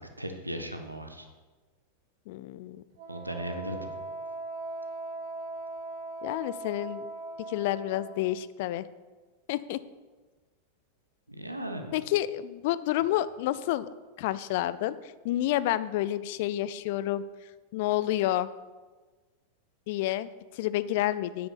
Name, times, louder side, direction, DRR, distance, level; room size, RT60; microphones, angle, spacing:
voice 1, 0.2-1.3 3.1-3.9 11.4-11.9, right 1 dB, 85° right, 5 dB, 1.2 m, -36 dB
voice 2, 2.3-2.8 6.2-7.1 7.5-8.9 9.5-9.8 11.9-13.9 14.2-14.9 15.2-17.2 17.7-18.5 19.9-21.5, left 14 dB, 50° left, 16 dB, 0.5 m, -29 dB
Wind instrument woodwind instrument, 3.0-8.2, right 2 dB, 50° right, 1.4 m, -39 dB
9.5 x 7.8 x 6.8 m, 1.3 s
figure-of-eight pair, 90°, 0 cm